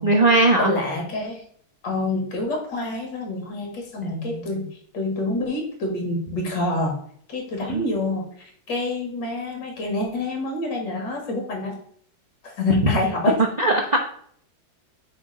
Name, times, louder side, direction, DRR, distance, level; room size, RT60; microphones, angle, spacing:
voice 1, 0.0-0.7 4.0-4.6 7.7-7.9 13.6-14.0, right 2 dB, 80° right, 1 dB, 0.3 m, -20 dB
voice 2, 0.6-1.4 1.8-4.7 4.9-6.9 7.3-11.8 12.4-13.3, left 2 dB, 55° left, 1 dB, 2.5 m, -27 dB
8.0 x 3.4 x 6.0 m, 0.63 s
omnidirectional pair, 2.3 m